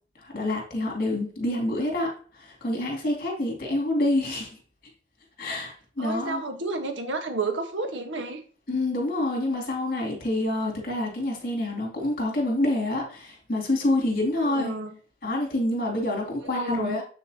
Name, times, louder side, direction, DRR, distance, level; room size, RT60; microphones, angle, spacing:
voice 1, 0.2-4.5 5.4-6.4 8.7-14.7 15.2-17.0, left 1 dB, 50° left, -1 dB, 2.7 m, -27 dB
voice 2, 6.0-8.4 14.4-14.9 16.4-17.0, right 2 dB, 80° right, 6 dB, 1.4 m, -31 dB
7.9 x 6.4 x 2.9 m, 0.42 s
head